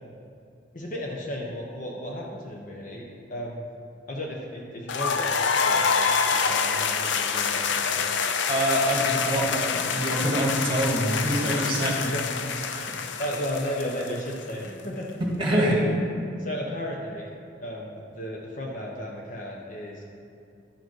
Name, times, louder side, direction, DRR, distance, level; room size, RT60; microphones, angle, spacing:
voice 1, 0.7-3.7 4.1-8.1 12.1-12.3 13.2-15.1 15.5-15.8 16.4-17.3 17.6-20.0, equal, 40° left, -1 dB, 0.8 m, -34 dB
sound 1, 4.9-14.7, left 6 dB, 60° left, 0.5 m, -26 dB
voice 2, 8.5-12.2 12.7-13.0 15.4-15.9, right 1 dB, 25° right, -3 dB, 1.8 m, -25 dB
10.5 x 4.9 x 6.1 m, 2.5 s
head